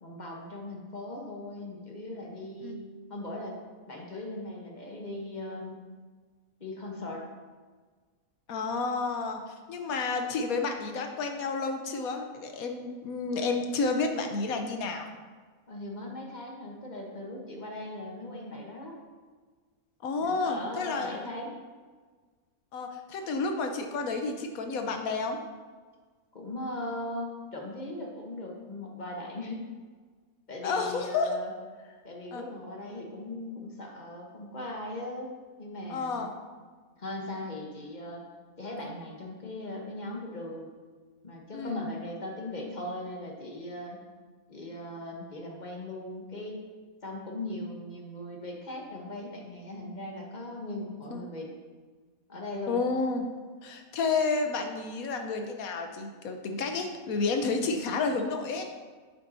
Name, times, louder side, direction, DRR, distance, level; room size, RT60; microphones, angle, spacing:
voice 1, 0.0-2.8 3.1-3.6 3.9-5.8 6.6-7.2 15.7-19.0 20.2-21.6 26.3-29.6 30.5-31.5 32.0-35.3 35.6-36.3 37.0-38.2 38.6-40.7 41.2-44.0 44.5-46.6 47.0-51.5 52.3-52.8, left 1 dB, 35° left, 0 dB, 1.1 m, -39 dB
voice 2, 8.5-9.4 9.7-15.1 20.0-21.3 22.7-25.4 30.6-31.3 32.3-32.4 35.9-36.3 41.5-41.8 51.1-51.2 52.7-53.3 53.6-58.6, left 4 dB, 85° left, 5 dB, 1.3 m, -30 dB
8.4 x 7.4 x 2.7 m, 1.5 s
omnidirectional pair, 1.5 m